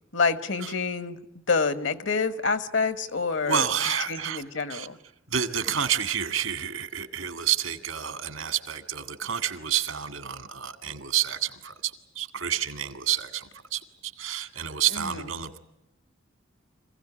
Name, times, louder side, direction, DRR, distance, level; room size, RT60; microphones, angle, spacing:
voice 1, 0.1-1.2 1.5-5.0 14.9-15.2, left 4 dB, 65° left, 12 dB, 1.4 m, -27 dB
voice 2, 3.4-4.4 4.7-4.9 5.3-15.6, right 9 dB, 90° right, 9 dB, 2.0 m, -29 dB
26.5 x 16.5 x 9.9 m, 0.88 s
head